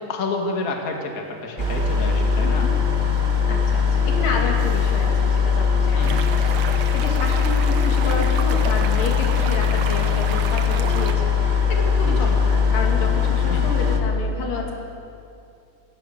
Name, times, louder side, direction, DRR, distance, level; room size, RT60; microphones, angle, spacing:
voice 1, 0.0-2.7 4.3-4.4 6.0-6.3 12.0-12.3 13.5-13.7, left 3 dB, 30° left, 2 dB, 2.1 m, -29 dB
sound 1, 1.6-14.0, left 6 dB, 40° right, 0.6 m, -20 dB
voice 2, 2.4-2.8 3.5-14.7, left 4 dB, 80° left, 1 dB, 4.4 m, -30 dB
sound 2, 6.0-11.2, right 7 dB, 65° right, 1.4 m, -33 dB
28.5 x 15.0 x 7.1 m, 2.5 s
omnidirectional pair, 3.8 m